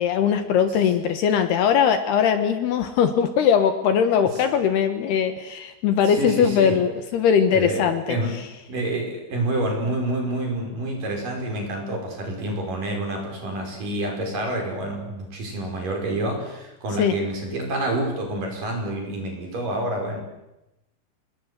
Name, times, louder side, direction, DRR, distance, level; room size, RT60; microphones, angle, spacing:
voice 1, 0.0-8.2 17.0-17.1, left 7 dB, 70° left, 9 dB, 3.1 m, -20 dB
voice 2, 6.0-6.8 7.5-8.4 8.7-20.2, right 1 dB, 45° right, 2 dB, 6.7 m, -28 dB
27.0 x 21.0 x 8.3 m, 0.94 s
omnidirectional pair, 5.3 m